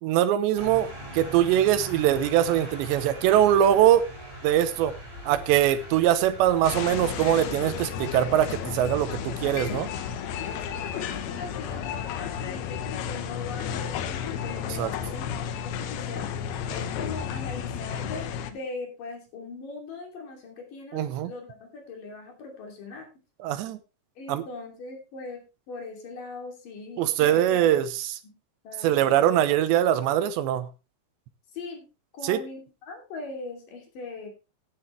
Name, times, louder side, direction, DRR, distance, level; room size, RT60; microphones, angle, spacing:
voice 1, 0.0-4.0 4.4-4.9 5.3-9.9 14.8-14.9 20.9-21.3 23.4-23.8 24.3-24.4 27.0-28.2 28.8-30.7 32.2-32.4, right 11 dB, 85° right, 3.1 m, -22 dB
sound 1, 0.5-12.5, equal, 10° right, 7.5 m, -42 dB
sound 2, 6.6-18.5, left 8 dB, 70° left, 2.8 m, -33 dB
voice 2, 10.4-16.3 16.7-23.1 24.2-27.6 28.6-29.1 31.5-31.9 32.1-34.3, left 3 dB, 50° left, 4.3 m, -40 dB
14.0 x 10.5 x 3.3 m
omnidirectional pair, 5.1 m